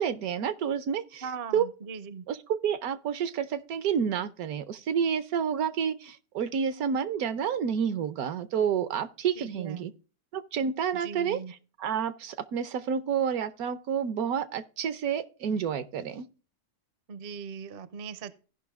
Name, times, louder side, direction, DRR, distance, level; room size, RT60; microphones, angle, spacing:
voice 1, 0.0-1.3 1.5-1.7 2.3-9.9 10.3-11.4 11.8-16.3, right 7 dB, 75° right, 1.1 m, -29 dB
voice 2, 1.2-2.2 9.4-9.9 10.9-11.5 17.1-18.3, right 6 dB, 50° right, 0.7 m, -39 dB
15.5 x 5.5 x 3.5 m
omnidirectional pair, 1.6 m